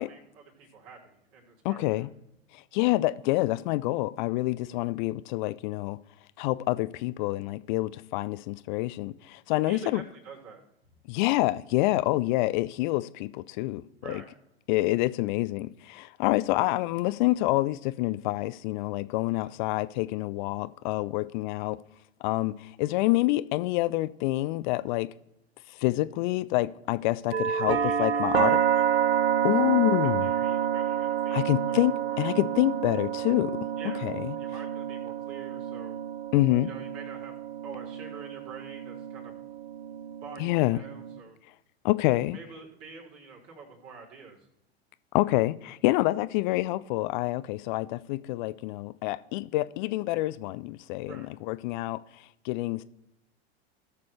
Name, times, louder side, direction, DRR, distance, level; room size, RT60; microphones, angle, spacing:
voice 1, 0.0-2.1 9.5-10.6 14.0-14.3 19.3-19.5 27.6-29.1 29.8-32.3 33.8-34.1 34.4-36.0 36.7-39.4 40.2-41.4 42.3-44.4 51.1-51.3, right 5 dB, 45° right, 3.6 m, -47 dB
voice 2, 1.6-2.1 2.5-6.0 6.4-10.0 11.1-14.2 14.7-21.8 22.2-25.1 25.7-28.6 29.4-30.2 31.3-33.6 34.0-34.3 36.3-36.7 40.4-40.8 41.8-42.4 45.1-52.8, left 18 dB, 50° left, 0.4 m, -27 dB
sound 1, 27.3-41.2, right 9 dB, 75° right, 0.6 m, -29 dB
17.5 x 6.8 x 3.3 m
figure-of-eight pair, 85°, 32 cm